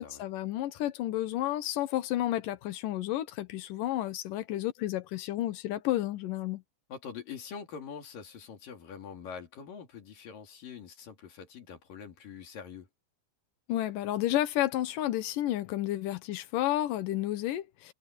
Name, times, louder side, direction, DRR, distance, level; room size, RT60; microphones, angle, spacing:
voice 1, 0.0-6.6 13.7-17.9, left 14 dB, 90° left, 1.9 m, -31 dB
voice 2, 6.9-12.9, left 6 dB, 50° left, 4.1 m, -44 dB
omnidirectional pair, 5.5 m